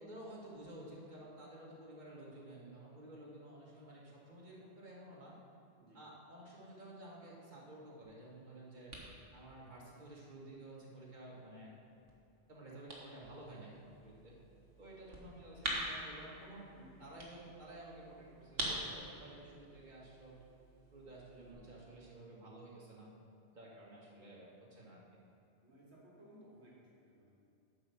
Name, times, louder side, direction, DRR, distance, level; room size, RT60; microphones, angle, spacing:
voice 1, 0.0-5.4 5.9-8.9 9.3-11.7 12.5-13.8 14.0-14.4 14.8-16.7 17.0-20.3 20.9-23.1 23.5-25.0, right 1 dB, 40° right, -5 dB, 2.0 m, -52 dB
sound 1, 8.0-21.5, right 1 dB, 55° right, 1.6 m, -47 dB
voice 2, 16.7-17.1 21.3-21.8 25.6-27.3, equal, 70° right, -5 dB, 1.8 m, -60 dB
8.0 x 5.1 x 7.1 m, 2.6 s
omnidirectional pair, 1.2 m